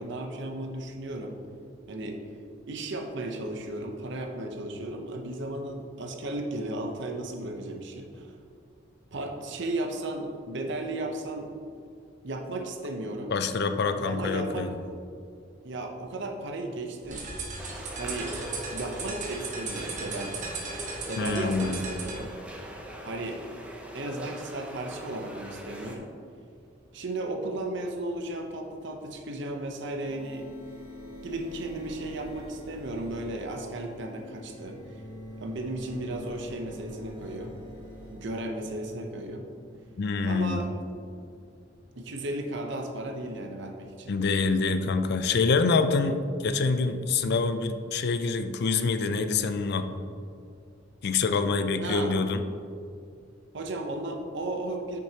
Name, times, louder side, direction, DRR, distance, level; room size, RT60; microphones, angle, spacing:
voice 1, 0.0-1.4 1.9-2.2 2.7-8.3 9.1-11.5 12.2-13.3 14.1-14.7 15.6-17.3 18.0-18.3 18.7-20.5 21.1-22.3 23.0-23.4 23.9-26.1 26.9-30.5 31.2-35.0 35.4-37.5 38.1-39.4 40.2-40.7 41.9-44.1 51.8-52.2 53.5-55.0, right 2 dB, 65° right, 3 dB, 0.8 m, -35 dB
voice 2, 13.3-14.8 21.2-21.8 40.0-40.6 44.1-46.2 46.4-49.9 51.0-52.4, left 4 dB, 60° left, 9 dB, 0.4 m, -26 dB
sound 1, 17.0-22.2, right 3 dB, 40° right, 1.1 m, -37 dB
sound 2, 17.6-26.0, equal, 5° right, 0.7 m, -41 dB
sound 3, 30.0-41.6, equal, 25° right, 1.7 m, -46 dB
8.7 x 6.4 x 2.9 m, 2.4 s
head